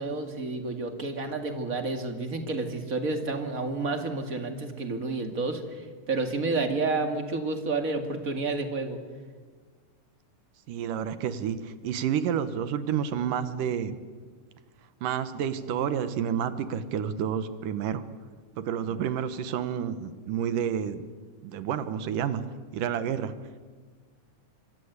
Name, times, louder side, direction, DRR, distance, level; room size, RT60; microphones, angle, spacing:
voice 1, 0.0-9.0, right 3 dB, 30° right, 6 dB, 2.1 m, -30 dB
voice 2, 10.7-14.0 15.0-18.0 18.6-21.0 21.4-22.4 22.7-23.3, right 8 dB, 90° right, 12 dB, 2.9 m, -29 dB
26.5 x 23.5 x 8.2 m, 1.5 s
omnidirectional pair, 3.6 m